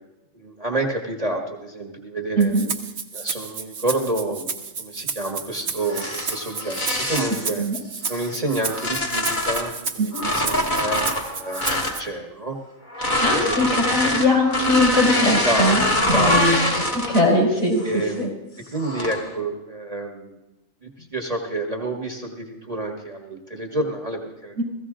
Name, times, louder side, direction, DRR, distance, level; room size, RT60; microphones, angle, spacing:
voice 1, 0.3-2.5 3.1-4.5 4.8-7.6 8.1-12.6 13.3-13.7 15.4-16.5 17.8-18.2 18.7-20.4 20.8-24.6, right 2 dB, 30° right, 1 dB, 1.3 m, -29 dB
Rattle (instrument), 2.4-12.0, right 5 dB, 55° right, 1.2 m, -32 dB
sound 1, 5.8-7.5 8.1-9.7 10.1-12.0 12.9-17.4 17.8-18.1 18.8-19.3, left 1 dB, 35° left, 1.8 m, -24 dB
voice 2, 13.0-17.8 18.2-18.3 24.6-24.7, left 1 dB, 60° left, -2 dB, 4.4 m, -21 dB
15.5 x 15.5 x 3.7 m, 0.97 s
omnidirectional pair, 1.4 m